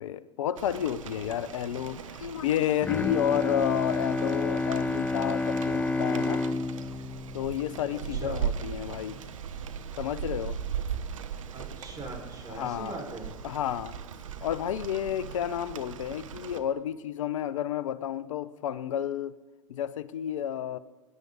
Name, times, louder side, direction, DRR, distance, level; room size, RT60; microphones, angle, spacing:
voice 1, 0.0-6.4 7.3-9.2 10.0-10.6 12.5-12.9 13.4-14.0 14.4-19.3 19.7-20.8, left 10 dB, 75° left, 17 dB, 0.8 m, -31 dB
Rain, 0.6-16.6, right 8 dB, 75° right, 1.1 m, -39 dB
Bowed string instrument, 2.8-8.4, left 3 dB, 10° left, 0.4 m, -30 dB
voice 2, 7.9-8.4 11.5-13.3, right 2 dB, 20° right, -1 dB, 5.4 m, -41 dB
23.5 x 10.5 x 4.1 m, 1.2 s
hypercardioid pair, 90°, 17 cm